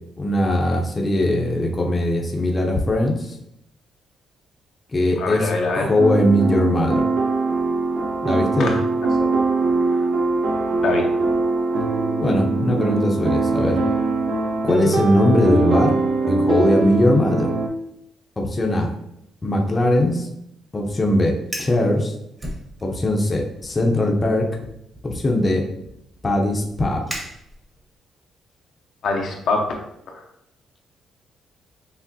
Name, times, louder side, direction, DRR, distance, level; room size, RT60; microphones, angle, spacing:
voice 1, 0.2-3.4 4.9-7.1 8.2-8.7 12.2-13.8 14.6-15.9 16.3-17.5 18.4-18.9 19.4-20.3 20.7-22.1 22.8-24.5 25.0-25.6 26.2-27.0, left 1 dB, 25° left, 0 dB, 0.6 m, -20 dB
voice 2, 5.2-5.9 8.6-8.8 9.2-9.4 9.9-10.0 10.8-11.1 29.0-29.8 30.1-30.2, left 3 dB, 65° left, 1 dB, 0.6 m, -24 dB
sound 1, 6.0-17.7, right 3 dB, 70° right, 0.7 m, -22 dB
Fire, 21.5-21.8 22.4-23.2 23.5-23.9 24.6-27.9, right 1 dB, 25° right, 1.1 m, -37 dB
5.8 x 2.0 x 2.7 m, 0.78 s
cardioid pair, 90°, 0 cm